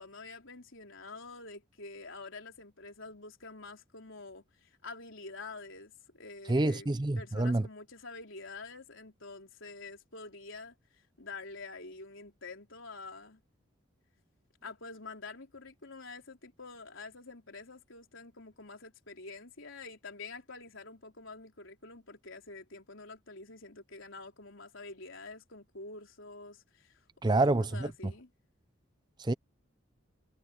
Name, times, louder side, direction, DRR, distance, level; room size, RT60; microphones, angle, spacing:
voice 1, 0.0-6.9 7.2-13.4 14.6-28.3, left 3 dB, 70° left, 3.9 m, -47 dB
voice 2, 6.5-7.6 27.2-28.1 29.2-29.3, right 2 dB, 20° right, 0.5 m, -28 dB
head